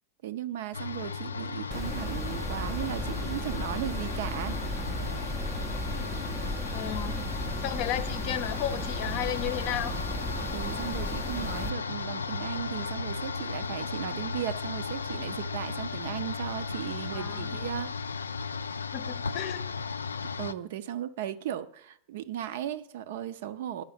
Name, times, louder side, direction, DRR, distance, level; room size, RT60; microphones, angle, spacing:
voice 1, 0.2-4.6 10.5-17.9 20.4-23.8, right 11 dB, 55° right, 0.5 m, -36 dB
sound 1, 0.7-20.5, left 5 dB, 75° left, 0.3 m, -35 dB
Wind instrument woodwind instrument, 1.3-17.9, right 6 dB, 75° right, 1.0 m, -51 dB
sound 2, 1.7-11.7, equal, 5° right, 0.5 m, -35 dB
voice 2, 6.7-7.2 7.6-9.9 17.1-17.6 18.9-19.6, left 11 dB, 45° left, 0.7 m, -33 dB
9.3 x 5.5 x 7.1 m
figure-of-eight pair, 90°, 0 cm